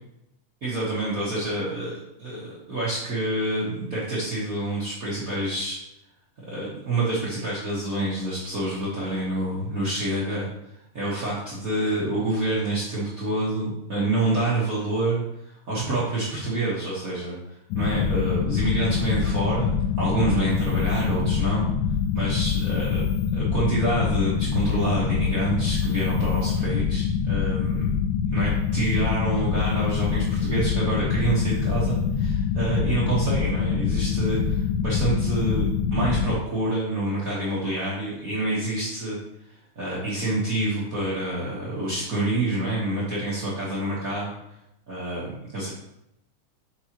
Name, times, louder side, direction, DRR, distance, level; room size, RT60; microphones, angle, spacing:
voice 1, 0.6-5.8 6.4-10.5 10.9-21.7 22.1-28.0 28.3-39.2 39.5-44.3 44.9-45.7, right 2 dB, 60° right, -8 dB, 0.8 m, -27 dB
sound 1, 17.7-36.4, left 7 dB, 85° left, 2.2 m, -25 dB
6.5 x 5.4 x 2.9 m, 0.85 s
omnidirectional pair, 3.6 m